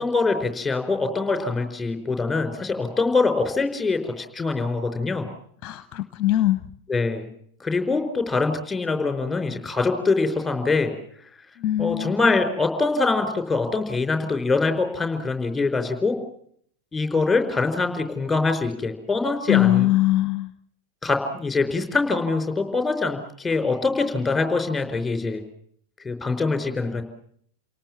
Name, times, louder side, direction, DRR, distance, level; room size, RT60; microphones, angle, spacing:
voice 1, 0.0-5.2 6.9-7.3 7.6-10.9 11.8-16.2 16.9-19.9 21.0-25.4 26.0-27.0, left 3 dB, 10° left, 6 dB, 4.7 m, -24 dB
voice 2, 5.6-6.6 11.6-12.2 19.5-20.5, left 15 dB, 35° left, 13 dB, 0.9 m, -21 dB
29.5 x 18.5 x 7.4 m, 0.66 s
figure-of-eight pair, 90°, 0 cm